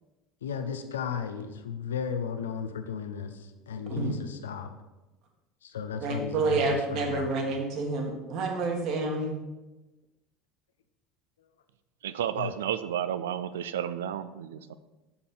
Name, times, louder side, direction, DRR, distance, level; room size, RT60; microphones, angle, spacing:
voice 1, 0.4-4.7 5.6-7.3 12.4-12.5, left 7 dB, 80° left, 8 dB, 0.6 m, -35 dB
voice 2, 6.0-9.4, right 3 dB, 55° right, 2 dB, 1.6 m, -29 dB
voice 3, 12.0-14.7, right 10 dB, 75° right, 13 dB, 0.4 m, -32 dB
7.0 x 6.6 x 3.8 m, 1.1 s
hypercardioid pair, 70°, 0 cm